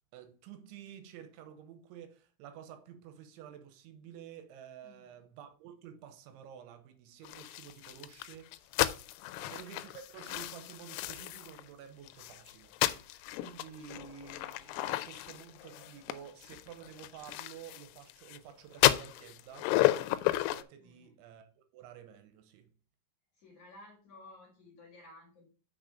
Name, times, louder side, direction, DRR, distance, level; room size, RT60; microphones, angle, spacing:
voice 1, 0.1-8.8 9.4-19.7 20.1-22.7, right 9 dB, 80° right, 3.2 m, -51 dB
voice 2, 4.8-5.1 9.2-9.5 20.8-21.1 23.3-25.4, left 2 dB, 55° left, 2.3 m, -55 dB
sound 1, 7.2-11.6 12.1-18.4 18.7-20.6, left 16 dB, 90° left, 3.1 m, -33 dB
6.5 x 6.3 x 4.8 m
omnidirectional pair, 5.5 m